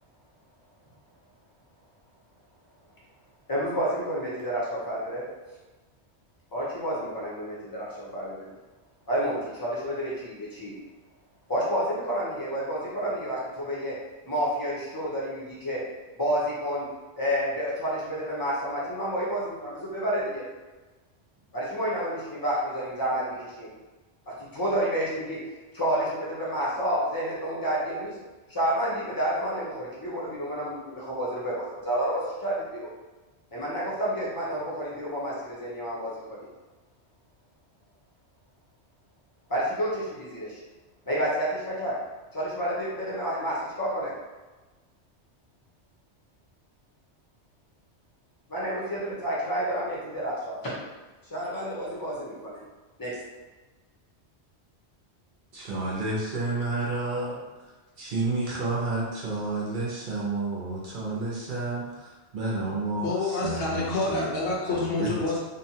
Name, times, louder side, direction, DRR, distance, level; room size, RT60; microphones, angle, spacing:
voice 1, 3.5-5.2 6.5-8.5 9.1-10.7 11.5-13.9 14.3-15.8 16.2-16.9 17.2-20.4 21.5-23.7 24.3-25.4 25.7-28.2 28.5-32.9 33.5-36.5 39.5-40.6 41.1-41.9 42.3-44.1 48.5-50.7 51.3-52.6 53.0-53.2, equal, 25° left, -6 dB, 0.6 m, -30 dB
voice 2, 55.5-57.4 58.0-63.1 63.4-64.2 64.8-65.1, right 2 dB, 55° right, -5 dB, 0.7 m, -30 dB
voice 3, 62.6-65.4, left 3 dB, 65° left, -3 dB, 0.8 m, -28 dB
2.7 x 2.2 x 2.7 m, 1.2 s
omnidirectional pair, 1.2 m